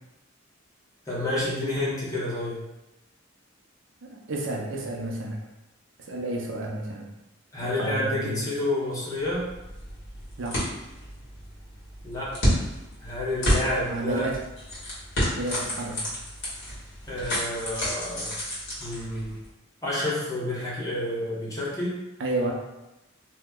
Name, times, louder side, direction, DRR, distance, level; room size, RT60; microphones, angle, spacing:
voice 1, 1.1-2.6 7.5-9.5 12.0-12.6 13.0-14.3 17.1-18.4 18.8-19.3 19.8-21.9, left 1 dB, 15° left, -7 dB, 0.9 m, -29 dB
voice 2, 4.0-5.4 6.1-7.1 7.6-8.4 10.4-10.6 13.9-14.4 15.4-16.0 22.2-22.5, right 1 dB, 70° right, 0 dB, 0.5 m, -31 dB
sound 1, 9.2-19.5, equal, 65° left, 1.4 m, -31 dB
2.9 x 2.1 x 3.5 m, 0.96 s
head